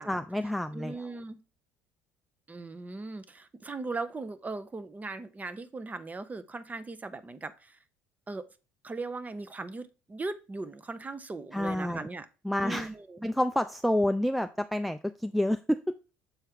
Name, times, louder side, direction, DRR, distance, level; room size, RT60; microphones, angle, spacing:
voice 1, 0.0-1.1 11.5-12.1 12.4-12.9 13.2-16.0, left 1 dB, ahead, 0.4 m, -29 dB
voice 2, 0.7-1.4 2.5-7.8 8.3-8.5 8.8-12.3 12.6-13.2, right 3 dB, 20° right, 0.8 m, -38 dB
7.1 x 4.3 x 3.6 m
hypercardioid pair, 60°, 7 cm